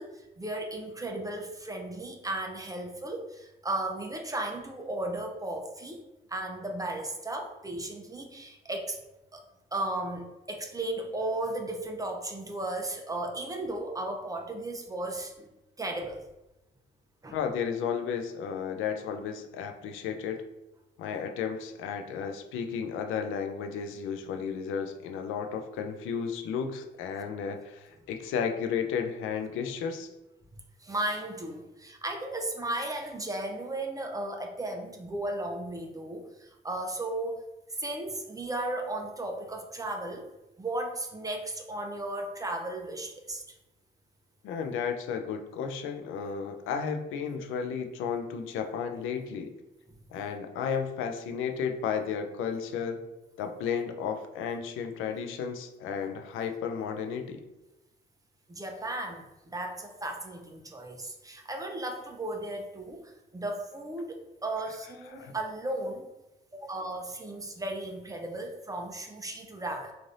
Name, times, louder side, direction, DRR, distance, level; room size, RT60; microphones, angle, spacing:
voice 1, 0.0-6.0 6.3-9.0 9.3-9.4 9.7-15.5 15.8-16.2 17.2-17.4 30.8-37.4 37.7-40.3 40.6-43.4 49.9-50.0 58.5-66.1 66.5-69.9, right 1 dB, 15° right, 2 dB, 0.5 m, -35 dB
voice 2, 17.3-20.4 21.0-30.1 44.4-49.5 50.1-53.0 53.4-57.4 65.1-65.3, left 6 dB, 90° left, 5 dB, 0.4 m, -33 dB
3.2 x 2.5 x 2.6 m, 0.97 s
cardioid pair, 90°, 20 cm